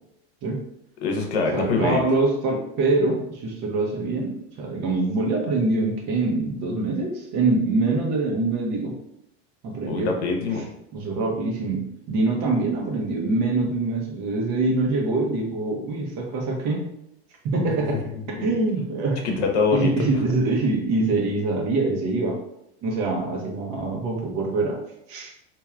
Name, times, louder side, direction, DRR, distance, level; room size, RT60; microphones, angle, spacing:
voice 1, 1.0-2.0 9.9-10.7 18.3-18.4 19.2-19.9, left 4 dB, 80° left, 2 dB, 0.8 m, -24 dB
voice 2, 1.5-9.0 9.6-10.1 10.9-16.9 17.4-19.4 19.7-22.4 22.8-24.8 25.1-25.3, right 3 dB, 55° right, 1 dB, 0.9 m, -24 dB
3.1 x 2.7 x 2.4 m, 0.77 s
hypercardioid pair, 90°, 32 cm